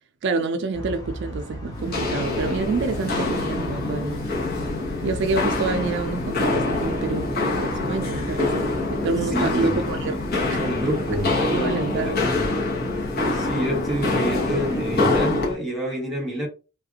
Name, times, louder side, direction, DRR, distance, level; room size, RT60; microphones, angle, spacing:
voice 1, 0.2-4.3 5.0-10.2 10.5-10.6 10.9-11.0 11.5-12.2 13.4-13.5, right 3 dB, 60° right, 0.4 m, -27 dB
sound 1, 0.7-15.6, right 1 dB, 20° left, 0.9 m, -39 dB
Walk footsteps, 1.7-15.5, left 2 dB, 50° left, 1.0 m, -25 dB
voice 2, 9.3-9.9 10.5-12.5 13.3-16.5, right 1 dB, ahead, 1.3 m, -28 dB
3.2 x 2.4 x 2.7 m
head